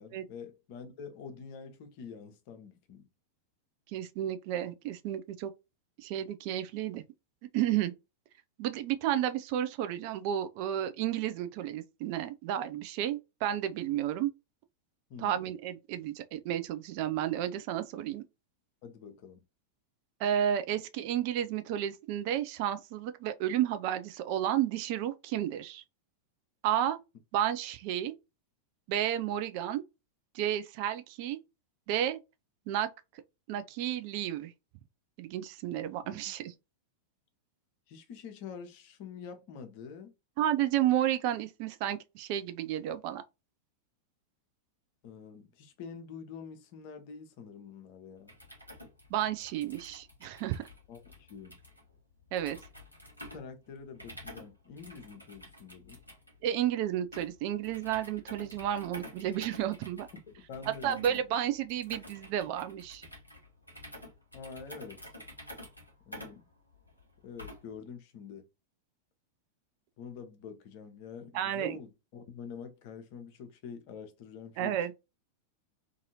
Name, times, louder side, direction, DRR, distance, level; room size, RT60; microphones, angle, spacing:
voice 1, 0.0-3.1 15.1-15.4 18.8-19.4 36.0-36.2 37.9-40.1 45.0-48.3 50.9-51.6 53.2-56.0 60.3-61.2 64.3-65.1 66.0-66.5 67.2-68.5 70.0-74.7, left 6 dB, 45° left, 0.7 m, -46 dB
voice 2, 3.9-5.5 6.0-7.0 7.5-7.9 8.6-14.3 15.2-18.2 20.2-25.8 26.6-27.0 27.3-28.1 28.9-29.8 30.3-31.4 31.9-32.2 32.7-32.9 33.5-34.5 35.2-36.5 40.4-43.2 49.1-50.6 52.3-52.6 56.4-60.1 60.8-63.1 71.3-71.8 74.6-74.9, right 11 dB, 45° right, 0.3 m, -32 dB
sound 1, 48.2-67.8, left 1 dB, 90° right, 0.9 m, -50 dB
2.7 x 2.6 x 2.7 m
figure-of-eight pair, 90°, 0 cm